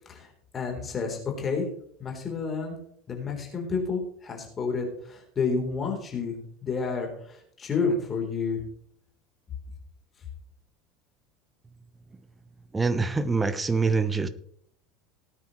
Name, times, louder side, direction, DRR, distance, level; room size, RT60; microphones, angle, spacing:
voice 1, 0.5-1.7 2.0-2.8 3.1-6.4 6.6-8.6, left 4 dB, 30° left, 1 dB, 3.8 m, -30 dB
voice 2, 12.7-14.3, right 4 dB, 15° right, 12 dB, 1.1 m, -25 dB
18.0 x 9.4 x 3.2 m, 0.64 s
figure-of-eight pair, 70°, 0 cm